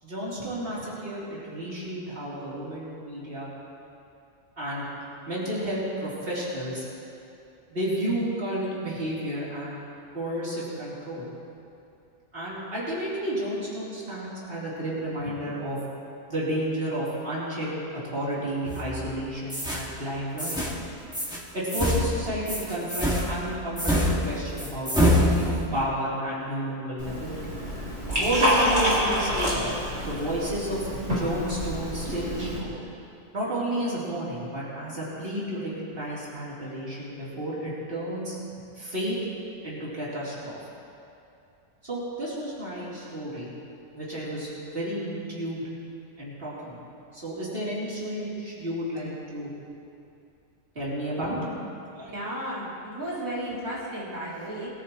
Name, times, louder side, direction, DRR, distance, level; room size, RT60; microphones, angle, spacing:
voice 1, 0.0-3.5 4.6-4.9 5.3-6.9 7.7-9.8 10.1-11.3 12.3-15.8 16.3-17.8 18.0-20.6 21.5-27.4 28.2-29.7 30.0-32.7 33.3-39.2 39.6-40.6 41.8-43.5 43.9-45.6 46.2-46.8 47.1-49.5 50.8-51.5 51.9-52.1, right 1 dB, 45° right, -8 dB, 3.7 m, -31 dB
sound 1, 18.7-19.1 19.5-19.9 20.4-20.8 21.1-21.4 21.7-25.8, equal, 5° right, 2.0 m, -26 dB
Liquid, 27.0-32.6, equal, 60° right, 4.5 m, -27 dB
voice 2, 52.1-54.7, right 1 dB, 90° right, -8 dB, 3.6 m, -33 dB
22.5 x 14.0 x 3.1 m, 2.7 s
omnidirectional pair, 1.4 m